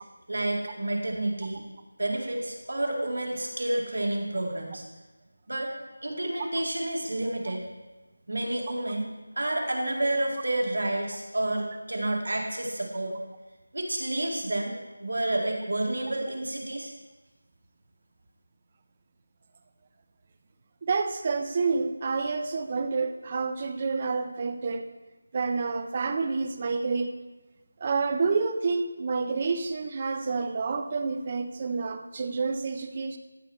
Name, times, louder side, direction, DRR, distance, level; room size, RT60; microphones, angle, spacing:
voice 1, 0.3-1.6 2.0-4.8 5.5-5.7 6.0-7.7 8.3-9.1 9.4-13.2 13.7-14.7 15.0-16.9, right 1 dB, 75° right, 0 dB, 1.9 m, -29 dB
voice 2, 20.8-24.8 25.3-27.1 27.8-33.2, right 4 dB, 20° right, 8 dB, 0.4 m, -28 dB
13.5 x 5.0 x 4.4 m, 1.2 s
figure-of-eight pair, 180°, 0 cm